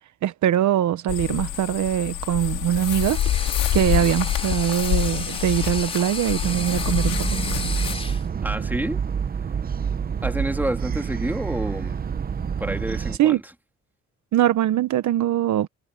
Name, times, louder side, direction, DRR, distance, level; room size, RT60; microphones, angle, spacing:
voice 1, 0.2-3.2 3.7-7.4 13.2-13.4 14.3-15.7, right 11 dB, 70° right, 1.1 m, -22 dB
sound 1, 1.1-7.9, left 12 dB, 80° left, 2.7 m, -27 dB
sound 2, 2.7-8.3, left 3 dB, 20° left, 3.7 m, -34 dB
sound 3, 6.4-13.2, right 7 dB, 30° right, 0.7 m, -27 dB
voice 2, 8.4-9.0 10.2-12.0 12.6-13.4, right 1 dB, 5° right, 3.0 m, -28 dB
cardioid pair, 90°, 30 cm